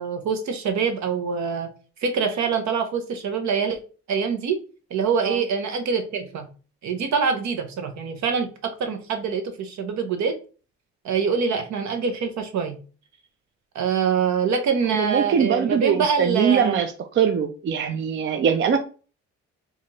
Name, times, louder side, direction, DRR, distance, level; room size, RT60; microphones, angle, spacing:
voice 1, 0.0-1.7 2.0-3.8 4.1-4.6 4.9-6.4 6.8-10.3 11.0-12.7 13.7-16.8, right 6 dB, 65° right, 0.8 m, -25 dB
voice 2, 14.9-18.8, right 7 dB, 40° right, 0.4 m, -22 dB
4.0 x 2.5 x 3.0 m
cardioid pair, 90°, 30 cm